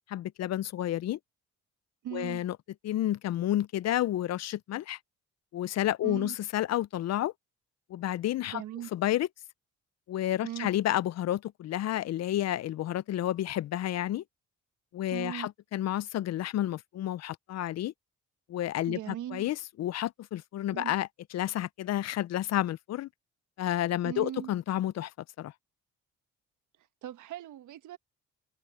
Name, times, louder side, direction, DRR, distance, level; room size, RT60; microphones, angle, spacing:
voice 1, 0.1-1.2 2.1-2.6 2.8-5.0 5.5-7.3 7.9-8.6 8.9-9.3 10.1-14.2 14.9-17.9 18.5-21.1 21.3-23.1 23.6-25.1 25.4-25.5, left 13 dB, 60° left, 0.5 m, -30 dB
voice 2, 2.0-2.4 6.0-6.3 8.5-8.9 10.4-10.7 15.1-15.5 18.9-19.5 20.7-20.9 24.0-24.5 27.0-28.0, right 12 dB, 80° right, 1.4 m, -39 dB
cardioid pair, 90°, 30 cm